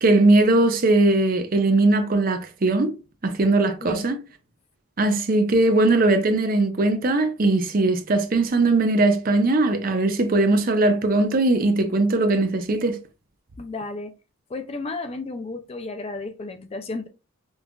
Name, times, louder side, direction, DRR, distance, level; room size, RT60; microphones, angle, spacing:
voice 1, 0.0-2.9 3.2-4.2 5.0-13.0, right 2 dB, 40° right, 0.5 m, -20 dB
voice 2, 13.6-14.1 14.5-17.1, left 3 dB, 30° left, 0.3 m, -33 dB
5.2 x 2.4 x 2.2 m
head